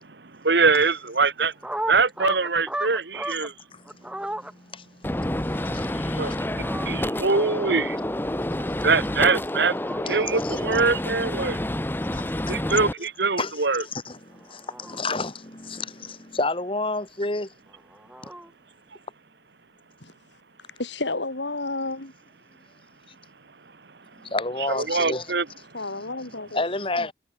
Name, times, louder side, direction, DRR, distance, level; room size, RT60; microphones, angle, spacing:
voice 1, 0.4-1.5 1.9-3.5 6.2-6.3 6.9-8.0 8.8-9.7 10.0-11.6 12.5-13.8 24.7-25.5, right 4 dB, 65° right, 1.4 m, -23 dB
sound 1, 1.4-3.5 3.8-4.5 6.1-6.9 8.6-9.4 9.7-10.0 12.1-12.8 14.3-15.3 17.7-18.5, right 1 dB, 5° right, 5.4 m, -35 dB
voice 2, 3.7-6.4 10.1-10.2 10.4-10.6 12.1-12.8 13.4-17.5 24.2-25.3 26.5-27.1, left 3 dB, 30° left, 2.1 m, -31 dB
Gunshot gunfire, 5.0-12.9, left 1 dB, 10° left, 0.8 m, -28 dB
voice 3, 20.6-22.1 25.7-26.6, left 2 dB, 75° left, 3.5 m, -31 dB
head